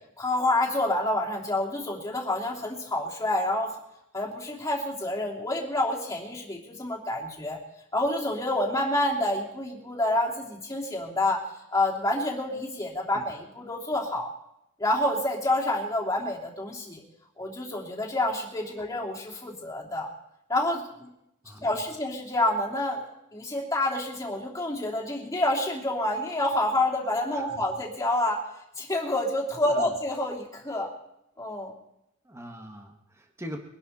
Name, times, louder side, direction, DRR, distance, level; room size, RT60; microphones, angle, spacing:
voice 1, 0.2-3.8 4.1-7.6 7.9-11.4 11.7-14.3 14.8-17.0 17.4-20.1 20.5-21.1 21.6-28.4 28.8-30.9 31.4-31.7, left 1 dB, 15° left, -3 dB, 3.1 m, -28 dB
voice 2, 21.4-21.8 27.3-27.6 29.7-29.9 32.2-33.6, equal, 15° right, 3 dB, 1.6 m, -42 dB
23.0 x 11.5 x 4.3 m, 0.83 s
head